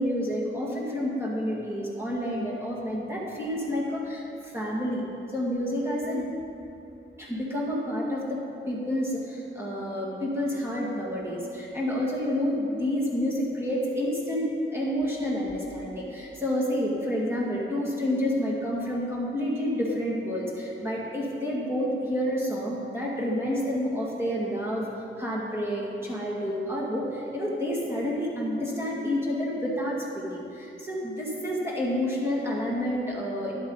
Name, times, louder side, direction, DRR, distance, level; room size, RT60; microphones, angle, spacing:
voice 1, 0.0-5.0 5.3-6.2 7.2-8.4 8.7-24.8 25.2-33.5, equal, 10° right, -5 dB, 2.2 m, -29 dB
13.0 x 11.0 x 4.0 m, 2.9 s
wide cardioid pair, 110°, 21 cm